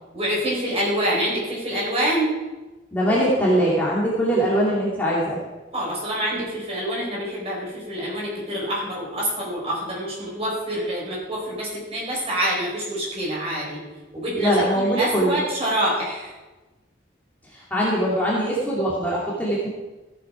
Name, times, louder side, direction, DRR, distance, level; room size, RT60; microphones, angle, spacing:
voice 1, 0.1-2.3 5.7-13.8 14.1-16.3, right 1 dB, 30° right, -4 dB, 4.7 m, -26 dB
voice 2, 2.9-5.4 14.3-15.4 17.5-19.7, equal, 10° left, -7 dB, 2.4 m, -22 dB
14.5 x 8.1 x 4.9 m, 1.1 s
head